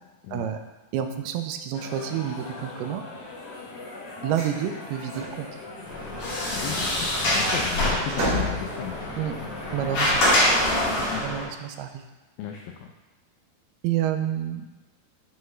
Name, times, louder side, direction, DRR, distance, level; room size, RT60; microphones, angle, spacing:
voice 1, 0.9-3.0 4.2-5.5 9.2-9.3 9.7-10.2 11.2-12.0 13.8-14.7, right 10 dB, 85° right, 7 dB, 2.4 m, -29 dB
sound 1, 1.7-10.9, left 2 dB, 65° left, 1.6 m, -40 dB
sound 2, 4.3-4.6 4.9-5.4 6.8-9.2 9.9-10.7, equal, 65° right, 3.9 m, -32 dB
Sliding door, 5.9-11.4, left 1 dB, 50° left, 2.0 m, -25 dB
voice 2, 6.5-9.1 11.0-11.2 12.4-12.9, left 9 dB, 85° left, 2 dB, 2.1 m, -35 dB
7.5 x 4.5 x 3.1 m, 1.1 s
omnidirectional pair, 4.6 m